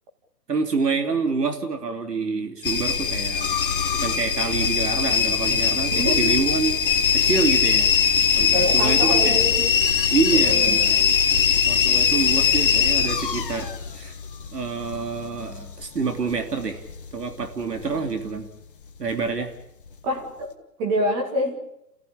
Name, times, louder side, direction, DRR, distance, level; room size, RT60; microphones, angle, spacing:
voice 1, 0.5-3.5 3.9-6.8 7.1-7.9 8.4-9.4 10.1-11.0 11.7-14.1 14.5-16.8 17.1-18.5 19.0-19.5, right 4 dB, 70° right, 5 dB, 3.3 m, -27 dB
sound 1, 2.6-17.5 17.8-18.4 19.0-19.4 19.9-20.0, left 6 dB, 30° left, 1.5 m, -21 dB
voice 2, 8.5-9.7 10.3-10.8 20.0-20.5 20.8-21.6, equal, 10° right, 1 dB, 2.1 m, -26 dB
29.5 x 15.5 x 8.8 m, 0.85 s
hypercardioid pair, 165°, 50 cm